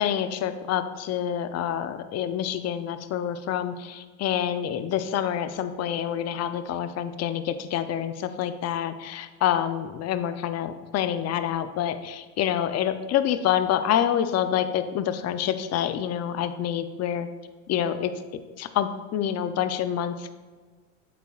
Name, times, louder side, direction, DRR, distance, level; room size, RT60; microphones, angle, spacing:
voice 1, 0.0-17.3 17.7-18.1 18.6-20.3, left 10 dB, 40° left, 11 dB, 0.6 m, -27 dB
8.4 x 8.2 x 2.4 m, 1.4 s
supercardioid pair, 100°, 39 cm